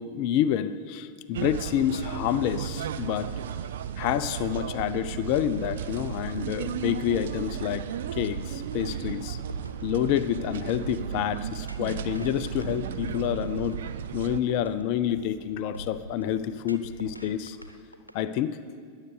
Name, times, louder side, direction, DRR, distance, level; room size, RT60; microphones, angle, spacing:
voice 1, 0.0-3.3 4.0-7.8 8.1-9.4 9.8-13.8 14.1-17.6 18.1-18.6, left 10 dB, 45° left, 14 dB, 0.6 m, -28 dB
sound 1, 1.3-14.4, right 9 dB, 60° right, 0.6 m, -34 dB
sound 2, 8.2-18.2, equal, 90° left, 0.9 m, -43 dB
21.0 x 8.2 x 6.8 m, 2.1 s
figure-of-eight pair, 90°, 0 cm